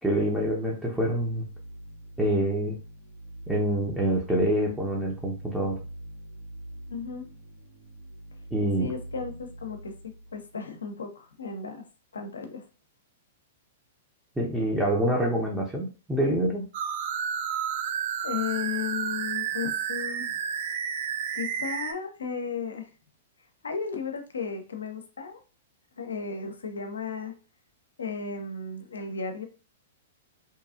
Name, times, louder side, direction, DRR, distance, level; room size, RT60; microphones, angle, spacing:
voice 1, 0.0-1.4 2.2-2.8 3.5-5.8 8.5-8.9 14.4-16.7, right 1 dB, 5° right, -3 dB, 0.6 m, -26 dB
sound 1, 0.9-10.9, right 1 dB, 80° right, 1.0 m, -44 dB
voice 2, 6.9-7.2 8.8-11.8 12.1-12.6 18.2-20.4 21.3-22.9 23.6-25.4 25.9-27.3 28.0-29.5, left 5 dB, 75° left, 6 dB, 0.5 m, -34 dB
sound 2, 16.7-21.9, right 8 dB, 50° right, 0.3 m, -31 dB
2.8 x 2.3 x 2.4 m, 0.35 s
figure-of-eight pair, 105°, 0 cm